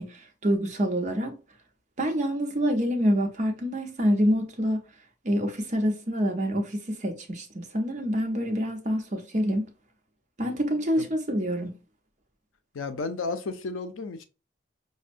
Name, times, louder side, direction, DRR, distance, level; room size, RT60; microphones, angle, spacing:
voice 1, 0.0-1.4 2.0-4.8 5.2-9.7 10.4-11.7, equal, 35° right, 0.6 m, -26 dB
voice 2, 12.7-14.2, left 3 dB, 90° left, 0.5 m, -33 dB
5.2 x 2.1 x 2.5 m
head